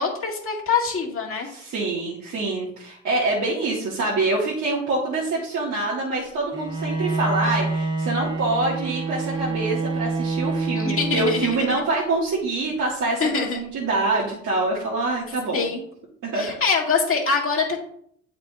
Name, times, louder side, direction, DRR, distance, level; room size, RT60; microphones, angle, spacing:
voice 1, 0.0-1.5 10.8-11.8 13.2-13.6 15.5-15.8 16.3-17.8, left 5 dB, 45° left, -2 dB, 1.9 m, -24 dB
voice 2, 1.4-15.7 16.2-16.6, right 2 dB, 70° right, -5 dB, 1.7 m, -25 dB
Bowed string instrument, 6.5-11.9, right 3 dB, 15° right, 0.7 m, -27 dB
8.5 x 4.8 x 2.4 m, 0.66 s
cardioid pair, 90°, 30 cm